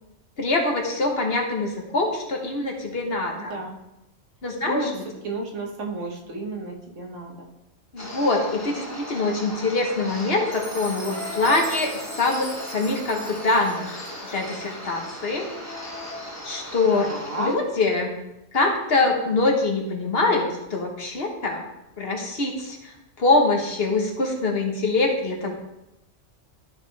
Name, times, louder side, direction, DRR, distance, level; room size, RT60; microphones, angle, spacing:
voice 1, 0.4-3.6 4.4-4.9 7.9-15.5 16.4-17.1 17.4-18.1 18.5-21.6 22.0-25.5, left 3 dB, 50° left, 1 dB, 1.4 m, -24 dB
voice 2, 3.4-3.8 4.6-7.5 16.9-17.5, right 2 dB, 70° right, 1 dB, 1.5 m, -32 dB
sound 1, 8.0-17.5, left 1 dB, 15° left, 1.2 m, -37 dB
Chime, 10.5-14.7, right 2 dB, 30° right, 1.3 m, -41 dB
12.5 x 4.8 x 3.4 m, 0.92 s
omnidirectional pair, 1.3 m